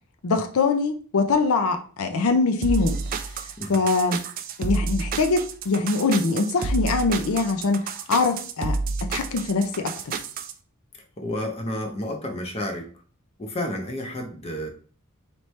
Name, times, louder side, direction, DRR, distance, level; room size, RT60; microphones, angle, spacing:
voice 1, 0.2-3.3 3.7-4.2 4.6-10.2, left 4 dB, 75° left, 0.5 m, -23 dB
sound 1, 2.6-10.5, right 4 dB, 40° right, 0.3 m, -29 dB
voice 2, 11.2-12.9 13.4-14.7, left 1 dB, 25° left, 0.7 m, -31 dB
4.3 x 3.1 x 3.1 m
head